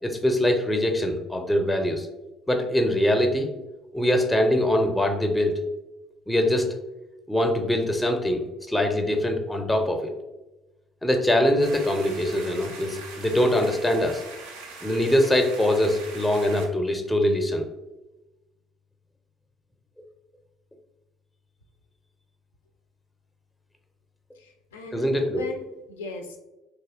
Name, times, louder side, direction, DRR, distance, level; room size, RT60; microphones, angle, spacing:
voice 1, 0.0-2.1 2.5-3.5 3.9-5.6 6.3-6.7 7.3-8.4 8.7-10.1 11.0-14.2 14.8-17.6 24.9-25.4, left 1 dB, 10° left, 4 dB, 0.4 m, -23 dB
sound 1, 11.6-16.7, right 3 dB, 75° right, 0.4 m, -42 dB
voice 2, 24.4-26.4, left 3 dB, 75° left, 4 dB, 0.3 m, -38 dB
3.2 x 2.6 x 2.4 m, 1.0 s
figure-of-eight pair, 50°, 0 cm